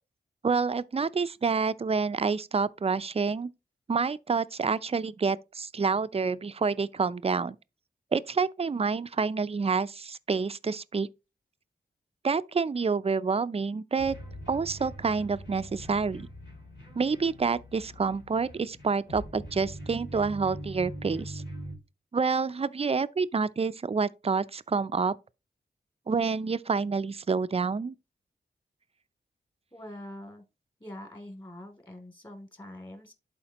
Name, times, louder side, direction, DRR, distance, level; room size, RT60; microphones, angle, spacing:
voice 1, 0.4-3.5 3.9-7.6 8.1-11.1 12.2-14.2 14.5-16.3 17.0-21.4 22.1-25.1 26.1-27.9, right 5 dB, 35° right, 0.4 m, -28 dB
sound 1, 14.0-21.7, equal, 80° left, 2.9 m, -42 dB
voice 2, 29.7-30.4 30.8-33.1, left 1 dB, 25° left, 2.7 m, -44 dB
11.5 x 4.2 x 2.9 m
cardioid pair, 55°, 18 cm